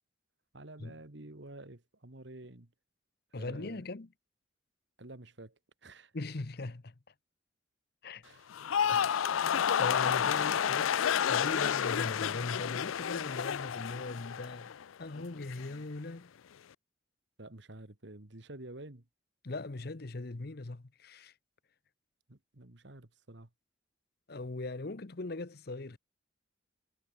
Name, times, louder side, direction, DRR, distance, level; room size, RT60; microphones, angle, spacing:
voice 1, 0.5-2.7 3.4-3.8 5.0-6.1 8.2-8.5 17.4-19.0 22.3-23.5, right 2 dB, 60° right, 1.8 m, -49 dB
voice 2, 3.3-4.1 6.1-6.9 8.0-8.2 8.9-9.5 9.8-11.0 11.3-14.7 15.0-16.3 19.4-21.3 24.3-26.0, left 2 dB, 50° left, 0.9 m, -40 dB
sound 1, 8.5-14.8 15.1-15.7, left 8 dB, 85° left, 0.4 m, -30 dB
head